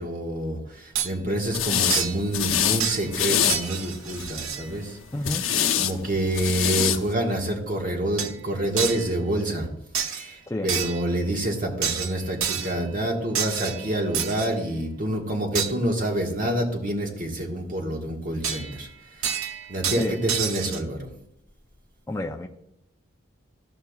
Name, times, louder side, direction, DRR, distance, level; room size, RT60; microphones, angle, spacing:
voice 1, 0.0-5.0 5.8-9.7 10.1-18.9 19.2-21.1, right 1 dB, 40° right, 0 dB, 1.5 m, -27 dB
sound 1, 0.9-1.1 1.9-2.3 2.8-3.2 3.5-4.7 8.2-8.4 8.8-9.1 9.9-10.3 10.7-11.1 11.8-12.8 13.3-14.5 15.5-15.7 18.4-18.9 19.2-20.8, right 8 dB, 90° right, 0.8 m, -29 dB
sound 2, 1.5-2.0 2.3-2.8 3.1-3.6 4.1-4.5 5.2-5.9 6.3-7.0, left 9 dB, 85° left, 0.8 m, -24 dB
voice 2, 5.1-5.5 10.5-10.7 20.0-20.2 22.1-22.5, left 1 dB, 15° left, 2 dB, 0.4 m, -29 dB
13.0 x 5.8 x 2.3 m, 0.78 s
head